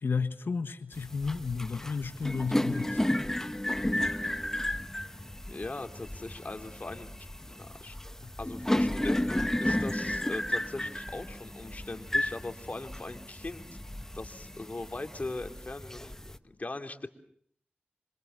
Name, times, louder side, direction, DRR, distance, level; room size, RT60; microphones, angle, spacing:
voice 1, 0.0-3.0 8.2-8.3, left 5 dB, 85° left, 1.5 m, -32 dB
sound 1, 0.9-16.4, left 1 dB, 15° left, 1.2 m, -33 dB
voice 2, 5.5-7.1 7.5-8.0 8.4-13.8 14.1-17.1, left 2 dB, 45° left, 2.9 m, -40 dB
27.5 x 26.0 x 6.9 m
wide cardioid pair, 60°, 4 cm